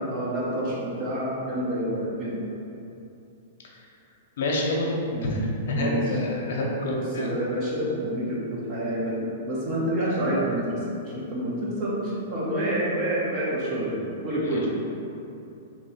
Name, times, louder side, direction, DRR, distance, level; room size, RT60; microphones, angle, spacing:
voice 1, 0.1-2.5 5.1-5.4 5.7-6.0 6.5-10.7 11.1-14.7, right 1 dB, 30° right, -6 dB, 0.8 m, -28 dB
voice 2, 4.4-7.3 14.4-14.7, left 1 dB, 65° left, -2 dB, 0.7 m, -28 dB
3.0 x 2.7 x 4.3 m, 2.8 s
hypercardioid pair, 165°, 0 cm